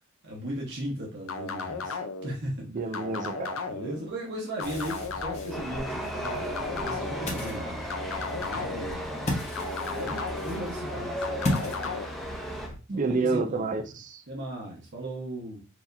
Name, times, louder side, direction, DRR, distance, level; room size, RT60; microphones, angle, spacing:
voice 1, 0.2-2.6 3.7-7.8 8.3-9.3 9.9-11.4 12.9-13.9 14.3-15.6, right 1 dB, 60° right, 1.1 m, -37 dB
sound 1, 1.3-2.3 2.9-4.0 4.6-5.6 6.2-7.3 7.9-9.0 9.6-10.6 11.2-12.1, left 4 dB, 70° left, 0.5 m, -35 dB
voice 2, 2.7-3.6 12.9-14.2, right 3 dB, 40° right, 0.5 m, -29 dB
Ocean, 4.6-12.8, left 1 dB, 35° left, 1.1 m, -36 dB
Chatter / Subway metro underground, 5.5-12.7, equal, ahead, 0.7 m, -36 dB
4.7 x 2.8 x 2.6 m
head